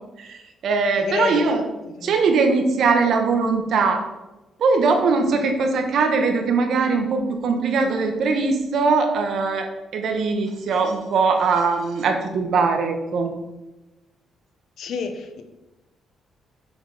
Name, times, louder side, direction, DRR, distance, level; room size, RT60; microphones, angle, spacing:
voice 1, 0.2-1.6 2.0-4.0 4.6-13.3, right 4 dB, 65° right, 4 dB, 1.6 m, -21 dB
voice 2, 1.0-1.5 2.0-2.2 5.1-5.4 14.8-15.4, left 5 dB, 70° left, 6 dB, 1.4 m, -29 dB
7.6 x 7.0 x 5.2 m, 1.0 s
cardioid pair, 90°, 0 cm